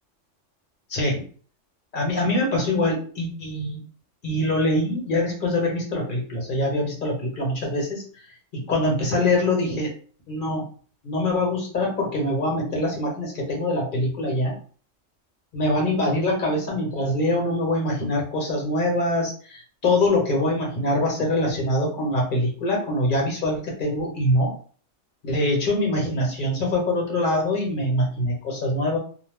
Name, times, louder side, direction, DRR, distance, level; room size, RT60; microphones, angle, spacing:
voice 1, 0.9-1.2 1.9-3.8 4.2-8.3 8.5-9.9 10.3-10.7 11.0-14.6 15.5-24.6 25.2-29.0, left 1 dB, 45° left, -1 dB, 1.1 m, -24 dB
2.6 x 2.1 x 3.4 m, 0.43 s
omnidirectional pair, 1.3 m